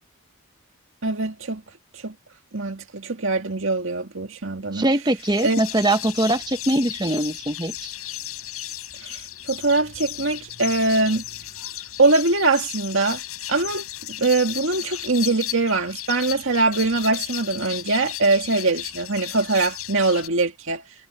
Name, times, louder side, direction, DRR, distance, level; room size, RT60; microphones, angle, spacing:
voice 1, 1.0-1.6 1.9-2.1 2.5-4.9 5.4-5.6 9.0-11.2 12.0-13.2 13.5-13.8 14.2-20.8, right 3 dB, 60° right, 2.2 m, -22 dB
voice 2, 4.7-7.9, right 1 dB, 20° right, 1.2 m, -22 dB
sound 1, 5.2-20.3, left 13 dB, 80° left, 6.6 m, -35 dB
head